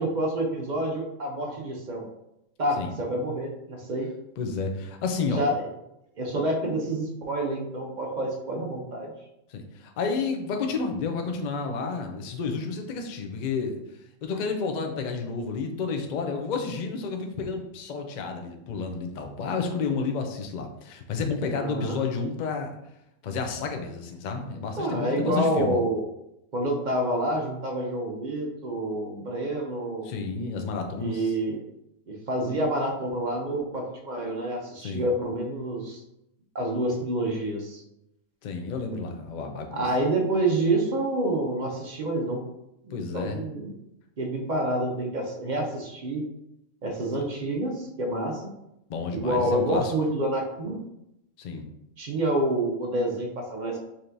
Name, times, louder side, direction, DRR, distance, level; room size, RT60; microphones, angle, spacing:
voice 1, 0.0-2.1 2.6-4.1 5.4-5.7 6.2-9.1 21.6-22.0 24.8-26.0 26.5-30.1 31.0-31.6 32.1-36.0 36.5-37.8 39.7-42.4 43.1-43.8 44.2-46.2 46.8-48.5 49.1-50.8 52.0-53.8, right 1 dB, 50° right, 0 dB, 0.5 m, -28 dB
voice 2, 4.4-5.4 9.5-13.8 14.2-22.7 23.2-25.8 30.0-31.3 34.8-35.1 38.4-39.9 42.9-43.4 48.9-49.9 51.4-51.7, left 4 dB, 85° left, 4 dB, 0.4 m, -31 dB
5.0 x 2.9 x 2.6 m, 0.84 s
omnidirectional pair, 1.5 m